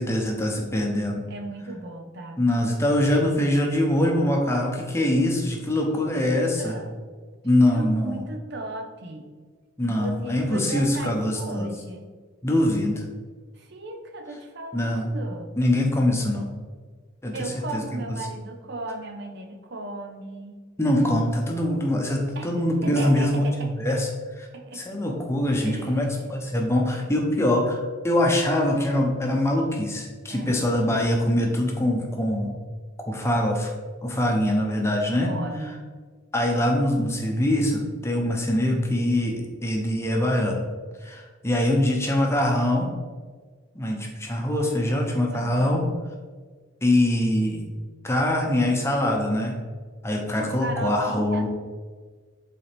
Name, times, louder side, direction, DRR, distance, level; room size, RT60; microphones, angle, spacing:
voice 1, 0.0-1.2 2.4-6.8 7.4-8.2 9.8-11.7 12.4-13.0 14.7-15.1 15.5-16.5 17.2-18.0 20.8-23.4 23.8-24.1 24.7-27.8 28.0-32.5 33.1-33.7 34.0-35.3 36.3-40.6 41.0-42.9 43.7-45.9 46.8-47.7 48.0-49.6 50.0-51.5, left 1 dB, 15° left, 0 dB, 0.8 m, -23 dB
voice 2, 1.3-2.4 6.1-7.0 7.5-9.3 9.8-12.0 13.6-15.6 17.3-20.6 22.3-22.5 22.8-24.0 24.5-25.0 25.6-26.4 30.3-30.7 35.2-35.9 38.5-38.8 45.3-45.8 50.2-51.5, right 2 dB, 55° right, 5 dB, 0.7 m, -36 dB
8.3 x 4.2 x 3.5 m, 1.5 s
head